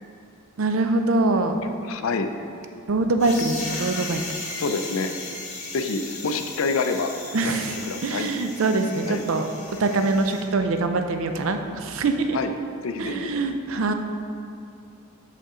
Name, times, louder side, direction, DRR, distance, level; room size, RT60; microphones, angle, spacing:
voice 1, 0.6-1.6 2.9-4.2 7.3-7.8 8.0-9.5 9.8-12.4 13.0-13.9, right 3 dB, 60° right, 6 dB, 0.5 m, -23 dB
voice 2, 1.8-2.3 4.6-5.1 5.7-7.1 7.4-8.3 9.1-9.2 12.3-12.5 12.8-13.3, left 4 dB, 60° left, 7 dB, 0.4 m, -27 dB
sound 1, 3.2-10.4, left 3 dB, 30° left, 1.0 m, -36 dB
6.7 x 5.4 x 3.7 m, 2.5 s
head